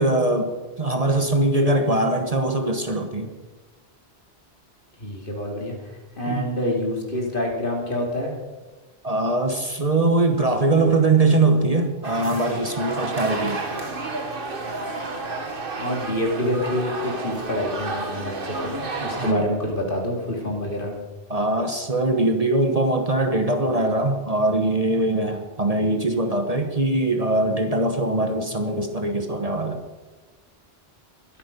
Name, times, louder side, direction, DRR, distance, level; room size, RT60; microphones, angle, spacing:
voice 1, 0.0-3.3 6.3-6.5 9.0-13.6 19.1-19.5 21.3-29.8, right 2 dB, 35° right, 6 dB, 1.1 m, -22 dB
voice 2, 5.0-5.7 6.2-8.3 15.8-20.9, left 1 dB, 55° left, 0 dB, 2.8 m, -27 dB
sound 1, 12.0-19.3, right 3 dB, 55° right, 1.6 m, -31 dB
21.5 x 8.7 x 5.2 m, 1.2 s
omnidirectional pair, 1.1 m